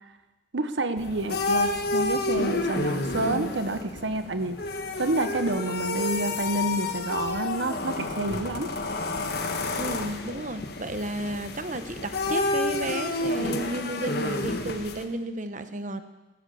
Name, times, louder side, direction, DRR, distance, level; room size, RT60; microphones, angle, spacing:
voice 1, 0.5-4.6 5.0-8.7, right 2 dB, 75° right, 10 dB, 0.9 m, -29 dB
sound 1, 1.0-15.0, left 2 dB, 60° left, 1.6 m, -30 dB
voice 2, 9.8-16.0, right 1 dB, 45° right, 10 dB, 1.1 m, -32 dB
15.5 x 13.0 x 7.0 m, 1.1 s
head